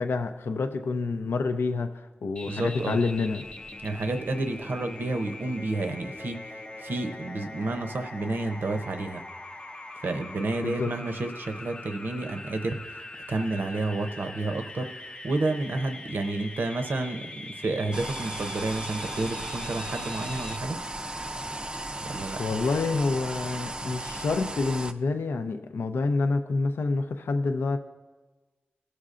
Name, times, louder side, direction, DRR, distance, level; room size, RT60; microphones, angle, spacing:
voice 1, 0.0-3.4 10.6-10.9 21.9-22.0 22.4-27.8, left 3 dB, 85° left, 7 dB, 0.5 m, -28 dB
sound 1, 2.4-20.6, left 2 dB, 30° left, 0.6 m, -42 dB
voice 2, 2.4-3.0 3.8-9.2 10.0-20.8 22.0-22.6, right 2 dB, 60° right, 7 dB, 0.6 m, -30 dB
sound 2, 17.9-24.9, right 2 dB, 25° right, 0.4 m, -36 dB
17.0 x 6.5 x 2.5 m, 1.3 s
wide cardioid pair, 95°, 4 cm